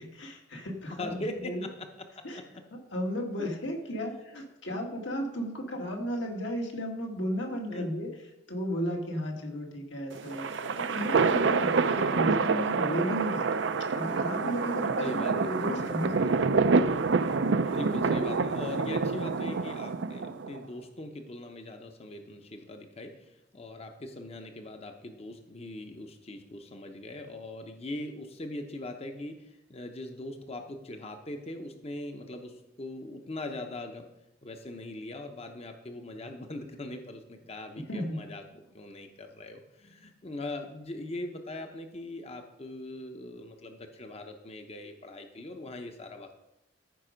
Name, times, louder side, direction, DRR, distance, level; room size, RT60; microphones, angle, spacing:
voice 1, 0.0-1.7 2.2-2.4 2.9-8.1 8.5-13.6 13.9-16.2 37.8-38.2, equal, 75° left, 1 dB, 2.0 m, -34 dB
voice 2, 0.9-2.6 4.0-4.2 4.7-4.9 7.7-7.9 11.6-11.7 15.0-15.3 15.8-15.9 17.7-34.0 34.4-38.4 38.7-46.3, left 1 dB, 35° left, 5 dB, 0.8 m, -41 dB
sound 1, 10.1-20.6, right 4 dB, 70° right, 0.5 m, -27 dB
14.0 x 5.3 x 5.1 m, 0.89 s
head